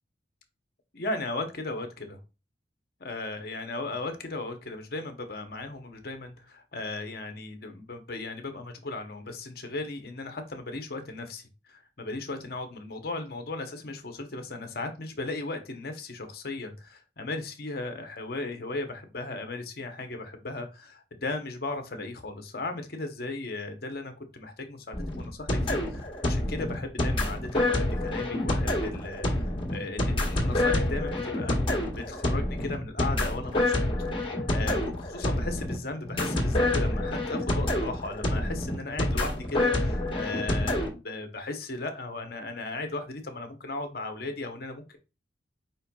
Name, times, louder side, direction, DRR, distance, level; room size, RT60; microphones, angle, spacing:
voice 1, 0.9-2.2 3.0-33.9 34.2-45.0, left 2 dB, 55° left, 6 dB, 0.9 m, -36 dB
sound 1, 24.9-40.9, left 1 dB, 30° left, 1.4 m, -27 dB
5.1 x 4.3 x 2.3 m, 0.30 s
head